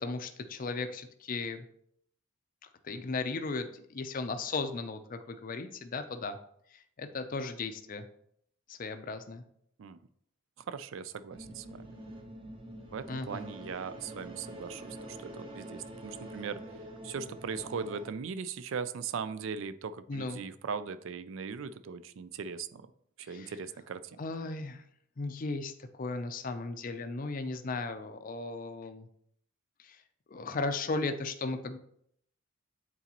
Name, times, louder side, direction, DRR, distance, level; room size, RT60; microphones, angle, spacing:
voice 1, 0.0-1.7 2.8-6.4 6.7-8.1 8.7-9.4 13.1-13.5 20.1-20.4 23.3-23.5 24.2-24.8 25.2-29.1 29.8-30.0 30.3-31.8, left 3 dB, 40° left, 8 dB, 0.5 m, -36 dB
voice 2, 10.7-11.9 12.9-16.6 17.0-22.8 23.2-24.2, right 6 dB, 65° right, 13 dB, 0.4 m, -39 dB
sound 1, 11.3-18.1, right 1 dB, 25° right, 0.7 m, -46 dB
8.3 x 4.0 x 2.9 m, 0.69 s
head